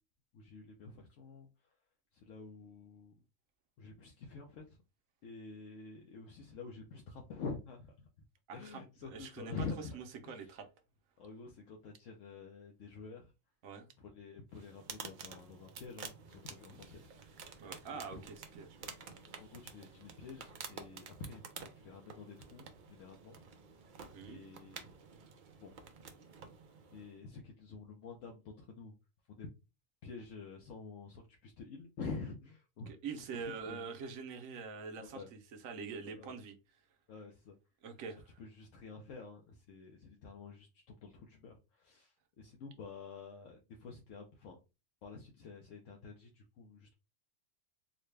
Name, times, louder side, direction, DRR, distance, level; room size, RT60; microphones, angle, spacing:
voice 1, 0.3-1.5 2.1-3.1 3.8-4.8 5.2-8.1 8.5-10.0 10.3-10.6 11.2-13.3 14.0-17.3 17.9-18.2 19.0-21.4 21.7-23.6 24.3-24.9 25.6-25.7 26.9-28.9 29.3-29.5 30.0-32.9 33.2-33.3 33.7-33.8 35.0-35.3 36.0-36.4 37.1-37.5 38.4-44.6 45.0-46.9, left 4 dB, 75° left, 1.0 m, -48 dB
voice 2, 8.5-8.8 9.1-9.7 9.9-10.7 13.6-13.9 17.6-18.9 24.1-24.4 32.9-36.5 37.8-38.2, right 5 dB, 90° right, 1.1 m, -45 dB
sound 1, 14.5-27.2, right 5 dB, 55° right, 0.6 m, -51 dB
3.9 x 2.1 x 3.2 m
omnidirectional pair, 1.4 m